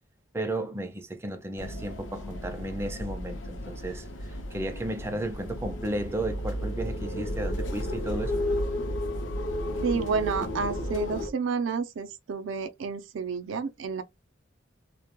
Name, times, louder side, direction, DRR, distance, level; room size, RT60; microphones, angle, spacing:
voice 1, 0.3-8.4, right 1 dB, 15° right, 0.3 m, -34 dB
sound 1, 1.6-11.3, left 1 dB, 75° left, 0.5 m, -33 dB
voice 2, 9.8-14.0, right 5 dB, 90° right, 0.4 m, -30 dB
2.1 x 2.0 x 2.9 m
head